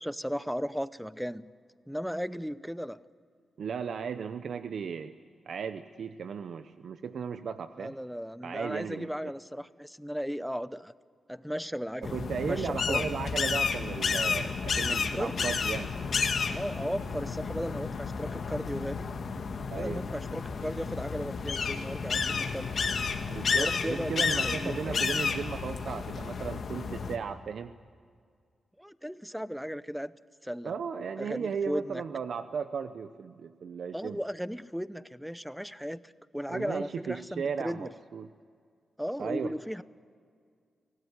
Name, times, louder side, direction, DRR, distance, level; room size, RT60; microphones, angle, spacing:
voice 1, 0.0-1.5 1.9-3.0 7.8-10.9 11.3-12.1 12.4-13.0 15.1-15.5 16.5-19.1 19.7-22.7 23.5-25.2 28.8-30.1 30.4-30.7 31.2-32.0 33.9-37.9 39.0-39.8, equal, ahead, 16 dB, 0.7 m, -36 dB
voice 2, 3.6-5.1 5.5-7.9 8.4-9.1 12.0-15.9 19.7-20.0 23.3-27.7 30.6-34.2 36.5-38.3 39.2-39.5, right 6 dB, 70° right, 10 dB, 0.8 m, -35 dB
sound 1, 12.0-27.2, left 5 dB, 60° left, 1.8 m, -31 dB
24.5 x 17.5 x 10.0 m, 2.1 s
cardioid pair, 90°, 0 cm